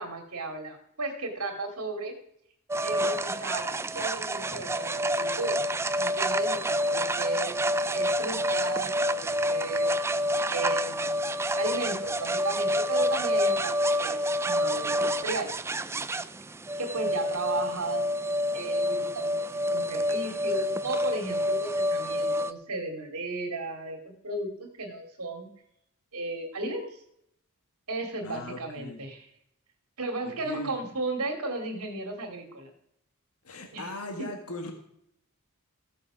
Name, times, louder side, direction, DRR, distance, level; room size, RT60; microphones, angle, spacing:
voice 1, 0.0-2.1 2.8-5.7 6.0-7.6 7.9-9.9 10.5-11.2 11.5-15.5 16.8-18.0 18.5-19.4 19.7-24.5 24.8-25.5 26.1-26.9 27.9-29.3 30.0-32.7 33.7-33.9, right 2 dB, 85° right, 5 dB, 2.6 m, -35 dB
sound 1, 2.7-22.5, equal, 10° right, 0.3 m, -28 dB
voice 2, 28.2-29.1 30.2-30.8 33.4-34.7, left 1 dB, 75° left, 5 dB, 1.6 m, -38 dB
14.5 x 7.1 x 6.2 m, 0.74 s
head